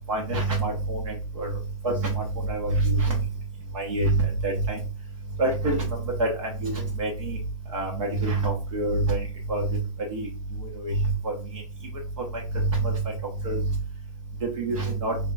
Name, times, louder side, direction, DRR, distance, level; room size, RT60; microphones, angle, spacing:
voice 1, 0.1-1.5 1.8-3.2 3.7-4.8 5.4-5.8 6.2-7.4 7.7-9.8 10.1-10.3 10.8-10.9 11.2-11.3 12.3-13.0 13.4-13.6 14.6-15.1, right 2 dB, 55° right, 1 dB, 1.2 m, -26 dB
4.0 x 2.9 x 2.3 m, 0.34 s
hypercardioid pair, 170°, 20 cm